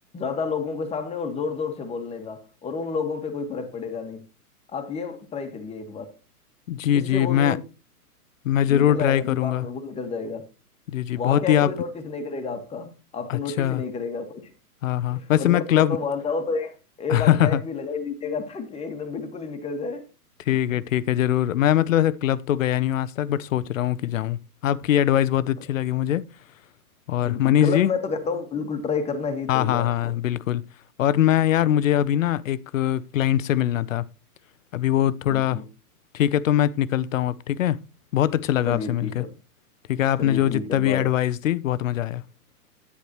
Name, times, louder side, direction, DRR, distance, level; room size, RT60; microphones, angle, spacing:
voice 1, 0.1-4.3 4.7-6.1 6.9-7.6 8.7-10.5 11.1-14.5 15.1-20.1 20.5-20.6 27.2-30.1 35.3-35.6 38.6-39.3 40.2-41.1, left 5 dB, 15° left, 1.6 m, -30 dB
voice 2, 6.7-7.6 8.4-9.6 10.9-11.7 13.3-13.8 14.8-16.0 17.1-17.6 20.5-26.2 27.1-27.9 29.5-30.6 31.0-34.0 34.7-35.6 36.1-37.8 38.1-39.2 39.9-42.2, left 11 dB, 60° left, 0.8 m, -22 dB
10.5 x 9.7 x 3.0 m
hypercardioid pair, 125°, 46 cm